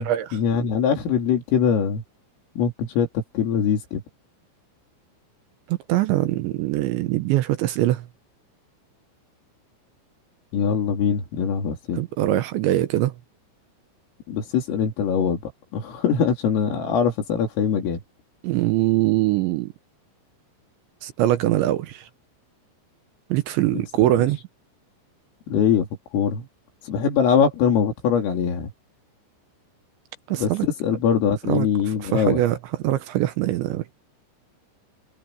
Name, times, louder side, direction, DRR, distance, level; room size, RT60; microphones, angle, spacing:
voice 1, 0.0-2.0 2.6-4.0 10.5-12.0 14.3-15.4 15.7-18.0 23.7-23.8 24.2-24.3 25.5-25.9 26.1-26.5 26.9-28.7 30.3-32.4, left 7 dB, 75° left, 6.5 m, -22 dB
voice 2, 5.7-8.0 12.0-13.1 18.4-19.7 21.0-22.1 23.3-24.4 30.3-30.7 31.5-31.7 32.0-32.6 32.8-33.9, right 15 dB, 75° right, 2.9 m, -22 dB
omnidirectional pair, 5.9 m